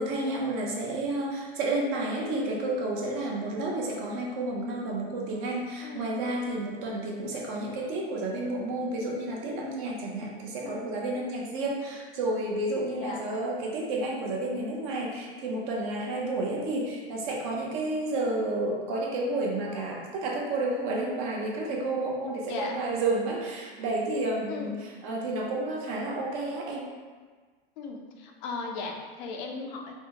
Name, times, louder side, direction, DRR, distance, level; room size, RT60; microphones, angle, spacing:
voice 1, 0.0-26.9, right 2 dB, 45° right, -2 dB, 0.7 m, -31 dB
voice 2, 5.8-6.2 10.6-11.0 13.0-13.2 22.5-22.9 24.5-24.9 27.8-29.9, left 4 dB, 55° left, 2 dB, 0.5 m, -37 dB
3.4 x 2.1 x 2.8 m, 1.5 s
hypercardioid pair, 125°, 29 cm